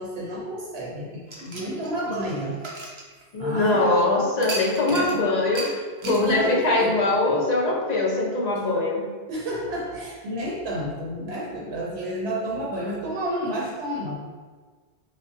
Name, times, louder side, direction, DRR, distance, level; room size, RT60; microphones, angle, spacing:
voice 1, 0.0-2.6 3.4-4.0 4.9-5.3 6.0-7.0 9.3-14.2, right 1 dB, 75° right, -3 dB, 0.8 m, -30 dB
sound 1, 1.3-3.7 4.4-5.2 5.5-5.7 6.0-6.2, right 2 dB, 45° right, 0.4 m, -35 dB
voice 2, 3.3-9.0, left 2 dB, 50° left, -2 dB, 0.6 m, -22 dB
4.9 x 2.1 x 2.7 m, 1.4 s
omnidirectional pair, 1.1 m